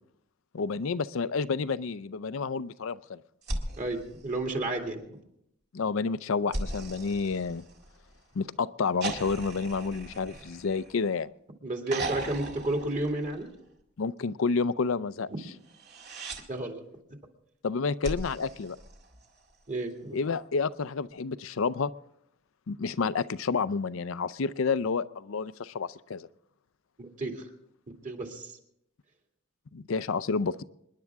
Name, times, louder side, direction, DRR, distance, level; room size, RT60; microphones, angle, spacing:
voice 1, 0.5-3.2 5.7-7.6 8.3-11.3 14.0-15.3 17.6-18.8 20.1-21.9 22.7-26.3 29.7-30.6, left 4 dB, 70° left, 16 dB, 0.5 m, -30 dB
sound 1, 3.4-5.0 6.5-8.2 9.0-11.3 11.9-13.7 15.7-16.4 18.0-19.5 21.0-21.1, right 2 dB, 55° right, 2.0 m, -38 dB
voice 2, 3.8-5.0 11.6-13.5 15.3-15.4 16.5-16.8 19.7-20.2 27.0-27.4 28.0-28.5, right 2 dB, 40° right, 2 dB, 2.3 m, -32 dB
26.5 x 10.5 x 3.6 m, 0.76 s
head